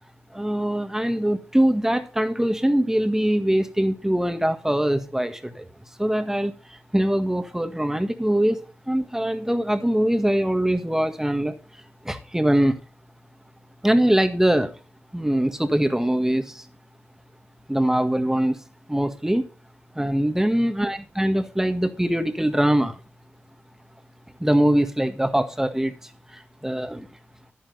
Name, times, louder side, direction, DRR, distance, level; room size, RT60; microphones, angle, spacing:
voice 1, 0.3-5.6 6.0-6.5 6.9-8.6 8.9-11.5 12.1-12.7 13.8-14.7 15.1-16.4 17.7-18.6 18.9-19.4 20.0-22.9 24.4-25.9 26.6-27.0, right 1 dB, 10° right, 1.7 m, -22 dB
10.0 x 9.3 x 4.1 m
cardioid pair, 45°, 5 cm